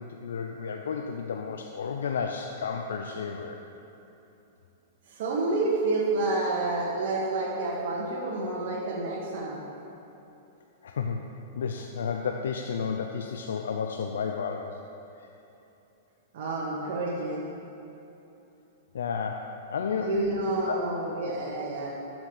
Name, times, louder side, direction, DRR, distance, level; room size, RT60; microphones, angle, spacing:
voice 1, 0.0-3.6 10.8-11.2 11.6-14.8 15.2-15.3 18.9-20.1 20.7-20.8, left 6 dB, 80° left, 3 dB, 0.5 m, -32 dB
voice 2, 5.1-9.6 16.3-17.4 20.0-21.9, right 2 dB, 60° right, -5 dB, 1.7 m, -29 dB
12.0 x 6.1 x 5.1 m, 2.9 s
hypercardioid pair, 115°, 0 cm